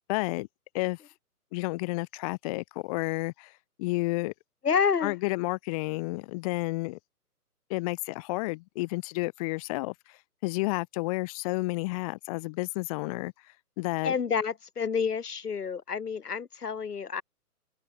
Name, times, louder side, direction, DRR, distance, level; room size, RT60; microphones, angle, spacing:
voice 1, 0.1-0.5 0.7-1.0 1.5-4.3 5.0-7.0 7.7-14.1, left 24 dB, 25° left, 2.0 m, -31 dB
voice 2, 4.6-5.1 14.0-17.2, left 6 dB, 75° left, 4.4 m, -28 dB
hypercardioid pair, 150°, 47 cm